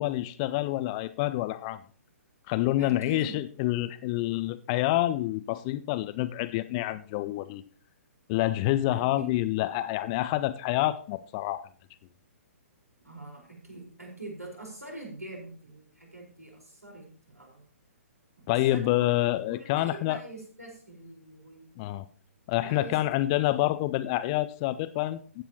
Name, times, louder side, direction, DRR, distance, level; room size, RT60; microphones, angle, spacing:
voice 1, 0.0-1.8 2.5-7.6 8.3-11.6 18.5-20.2 21.8-22.1 22.5-25.4, left 16 dB, 25° left, 14 dB, 0.4 m, -27 dB
voice 2, 2.8-3.4 8.9-9.4 13.0-17.6 18.5-21.7 22.6-23.0 23.4-23.7, right 2 dB, 85° right, 0 dB, 4.6 m, -44 dB
15.0 x 8.3 x 2.9 m, 0.43 s
figure-of-eight pair, 125°, 8 cm